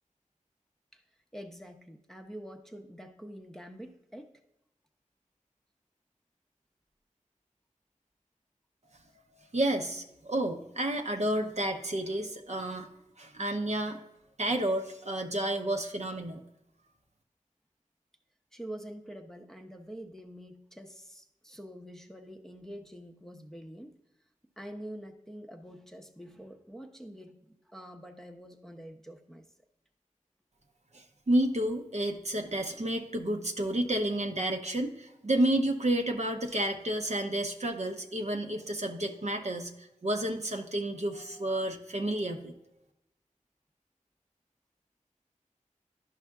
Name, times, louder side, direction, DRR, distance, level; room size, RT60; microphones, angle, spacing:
voice 1, 1.3-4.3 18.5-24.0 24.6-29.5, equal, 5° left, 3 dB, 0.7 m, -46 dB
voice 2, 9.5-12.9 13.2-14.0 14.4-16.4 30.9-42.5, right 1 dB, 55° right, 4 dB, 0.7 m, -30 dB
11.0 x 5.5 x 2.3 m, 0.88 s
wide cardioid pair, 45°, 14 cm